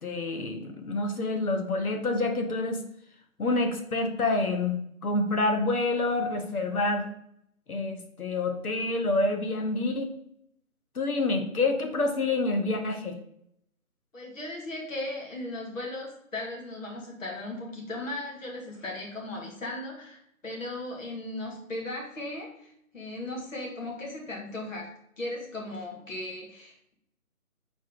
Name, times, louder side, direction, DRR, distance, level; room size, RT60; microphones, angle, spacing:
voice 1, 0.0-2.8 3.4-7.1 7.7-10.1 10.9-13.2, left 2 dB, 85° left, 5 dB, 1.3 m, -27 dB
voice 2, 14.1-24.9 25.2-26.9, left 2 dB, 65° left, -1 dB, 2.4 m, -37 dB
6.0 x 4.2 x 4.0 m, 0.73 s
hypercardioid pair, 170°, 43 cm